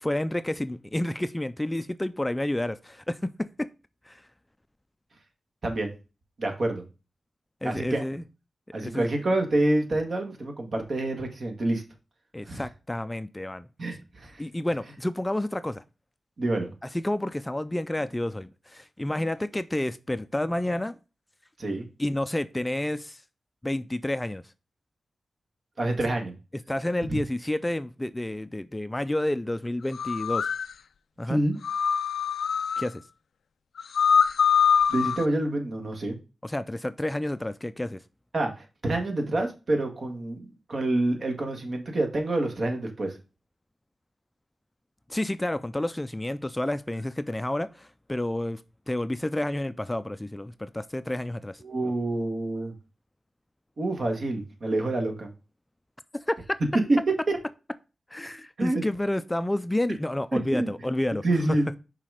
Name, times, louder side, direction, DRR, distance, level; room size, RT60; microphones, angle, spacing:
voice 1, 0.0-3.7 4.1-4.2 7.6-8.2 8.8-9.1 12.3-13.7 14.4-15.8 16.9-21.0 22.0-23.2 23.6-24.4 26.7-30.5 31.2-31.4 32.8-33.0 36.4-38.0 45.1-48.6 48.9-51.6 56.1-56.6 58.1-61.2, left 1 dB, 15° left, 0.4 m, -30 dB
voice 2, 6.4-6.8 7.6-8.0 8.7-11.8 12.5-12.6 13.8-14.4 16.4-16.7 21.6-21.9 25.8-26.3 27.1-27.2 31.3-31.6 34.9-36.2 38.3-43.2 51.6-52.7 53.8-55.3 56.9-57.0 57.3-57.4 58.6-58.8 60.3-60.7 61.2-61.7, right 2 dB, 60° right, 1.8 m, -27 dB
sound 1, 29.9-30.6 31.6-32.8 33.8-35.2, left 7 dB, 90° left, 0.3 m, -23 dB
5.9 x 4.0 x 4.9 m
wide cardioid pair, 85°, 0 cm